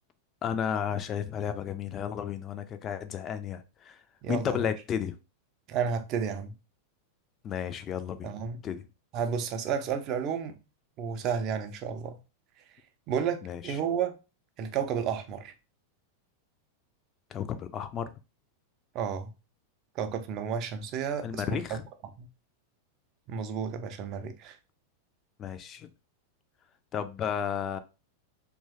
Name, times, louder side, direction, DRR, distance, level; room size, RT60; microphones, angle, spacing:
voice 1, 0.4-4.0 4.3-5.1 7.4-8.3 8.6-8.8 13.4-13.8 17.3-18.1 21.2-21.8 25.4-25.9 26.9-27.8, left 8 dB, 30° left, 0.4 m, -33 dB
voice 2, 4.2-4.6 5.7-6.6 8.2-8.6 9.1-10.6 11.0-12.2 13.1-14.1 14.6-15.5 18.9-19.3 20.0-21.8 22.2-22.3 23.3-24.6, right 7 dB, 35° right, 0.5 m, -32 dB
2.9 x 2.2 x 2.8 m
figure-of-eight pair, 90°, 0 cm